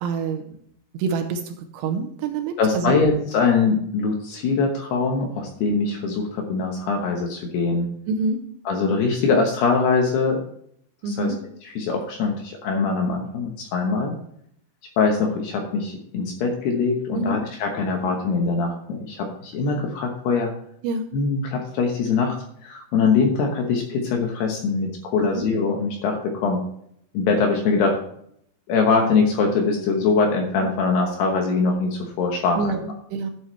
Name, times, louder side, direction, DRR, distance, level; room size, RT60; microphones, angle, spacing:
voice 1, 0.0-0.6 0.9-3.0 8.1-8.4 11.0-11.4 17.1-17.4 20.8-21.1 25.2-25.5 32.6-33.3, right 4 dB, 80° right, 7 dB, 3.0 m, -27 dB
voice 2, 2.6-7.9 8.7-10.4 11.1-11.3 11.6-14.1 15.0-20.5 21.1-22.4 22.6-26.6 27.1-28.0 28.7-32.8, left 4 dB, 70° left, 2 dB, 2.7 m, -22 dB
11.5 x 7.9 x 3.2 m, 0.68 s
omnidirectional pair, 5.9 m